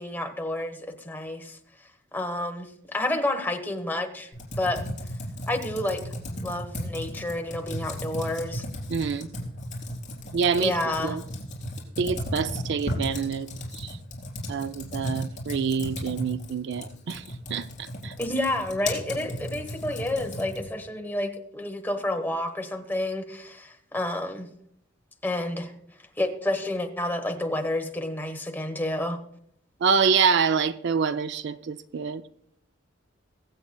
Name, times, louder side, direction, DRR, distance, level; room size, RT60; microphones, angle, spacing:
voice 1, 0.0-1.6 2.1-4.8 5.5-6.0 6.4-8.6 10.6-11.2 18.2-24.5 25.2-25.7 26.2-29.2, left 1 dB, 10° left, 1.0 m, -29 dB
Computer keyboard, 4.3-20.8, left 1 dB, 40° left, 3.7 m, -35 dB
voice 2, 8.9-9.3 10.3-10.7 11.0-11.2 12.0-14.0 14.5-18.1 29.8-32.2, right 6 dB, 60° right, 0.4 m, -26 dB
22.5 x 7.9 x 2.2 m
head